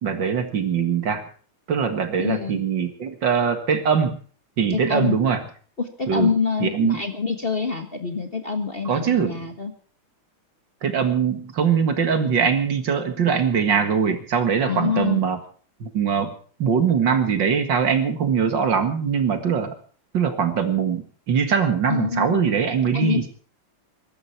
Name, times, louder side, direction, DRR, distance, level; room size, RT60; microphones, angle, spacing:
voice 1, 0.0-1.2 1.7-4.2 4.6-5.4 6.1-6.3 6.6-7.0 8.9-9.5 10.8-15.4 15.8-16.3 16.6-19.7 20.1-23.3, right 6 dB, 60° right, 8 dB, 2.5 m, -22 dB
voice 2, 2.2-2.6 4.7-5.2 5.8-9.7 14.6-15.2 21.9-22.3 22.9-23.3, left 5 dB, 30° left, 6 dB, 1.5 m, -25 dB
22.5 x 12.0 x 4.5 m, 0.43 s
omnidirectional pair, 2.4 m